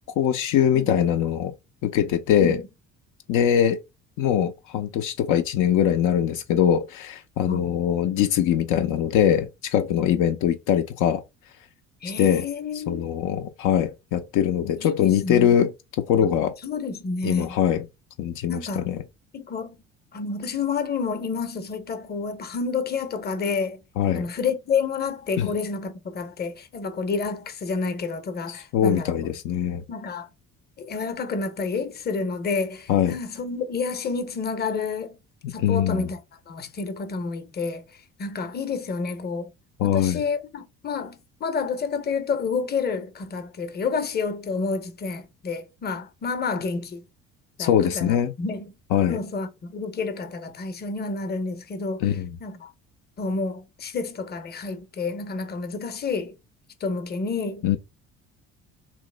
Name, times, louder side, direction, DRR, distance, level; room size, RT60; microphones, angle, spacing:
voice 1, 0.2-1.5 1.8-2.6 3.3-3.8 4.2-11.2 12.2-12.4 12.9-15.7 16.0-16.5 17.2-17.9 18.2-19.0 24.0-24.3 25.4-25.5 28.5-29.8 32.9-33.2 35.4-36.1 39.8-40.2 47.6-48.3 48.9-49.2 52.0-52.3 57.6-57.8, left 9 dB, 65° left, 0.5 m, -22 dB
voice 2, 12.0-13.0 14.8-15.5 16.6-17.6 18.5-18.9 19.3-19.8 20.1-23.8 24.1-29.2 29.9-30.3 30.8-35.2 35.5-36.2 36.5-37.8 38.2-39.5 39.8-47.1 47.6-48.7 49.1-52.1 52.4-52.7 53.2-56.3 56.8-57.8, left 4 dB, 30° left, 0.7 m, -29 dB
3.0 x 2.0 x 3.2 m
supercardioid pair, 75°, 32 cm